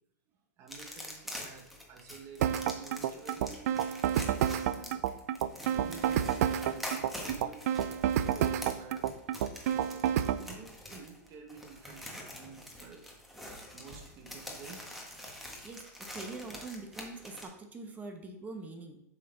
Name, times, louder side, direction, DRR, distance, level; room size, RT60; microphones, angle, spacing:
voice 1, 0.6-3.7 4.1-5.1 5.7-7.8 8.2-9.1 9.7-13.1 13.6-14.9, right 5 dB, 35° right, 4 dB, 1.5 m, -51 dB
sound 1, 0.7-17.4, equal, ahead, 1.3 m, -45 dB
sound 2, 2.4-10.4, right 10 dB, 65° right, 0.5 m, -29 dB
voice 2, 15.6-19.0, right 3 dB, 15° right, 5 dB, 1.0 m, -44 dB
7.7 x 5.8 x 3.9 m, 0.86 s
hypercardioid pair, 135°, 9 cm